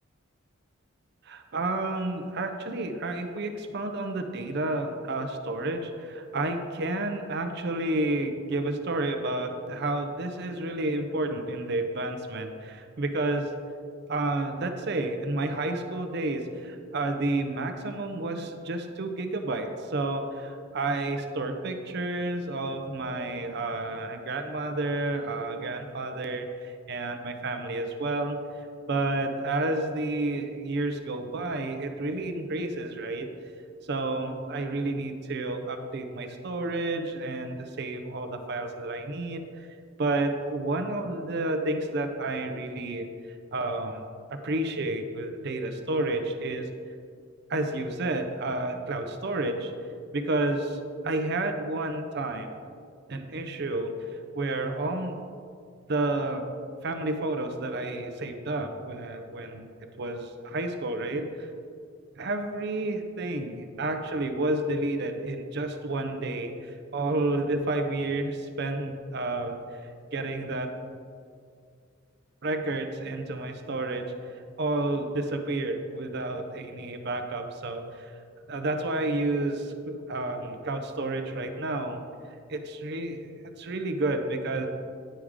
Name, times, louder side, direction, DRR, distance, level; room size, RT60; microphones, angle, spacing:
voice 1, 1.2-13.5 14.1-33.3 33.8-39.7 40.0-43.1 43.5-44.0 44.3-46.7 47.5-49.7 50.1-52.5 53.1-53.9 54.3-55.1 55.9-56.4 56.8-59.7 59.9-61.5 62.2-69.8 70.1-70.7 72.4-78.1 78.5-82.0 82.5-84.7, right 2 dB, 50° right, 6 dB, 0.6 m, -30 dB
10.0 x 4.8 x 3.6 m, 2.2 s
head